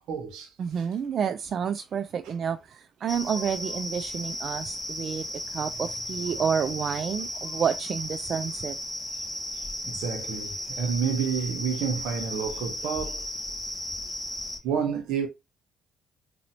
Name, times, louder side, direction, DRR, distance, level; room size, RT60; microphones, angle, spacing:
voice 1, 0.1-0.5 2.2-2.3 9.5-13.3 14.6-15.3, right 7 dB, 85° right, 1.0 m, -30 dB
voice 2, 0.6-8.8, right 7 dB, 60° right, 0.3 m, -29 dB
sound 1, 3.1-14.6, left 1 dB, 5° left, 1.6 m, -35 dB
4.1 x 2.7 x 2.8 m
supercardioid pair, 70°, 0 cm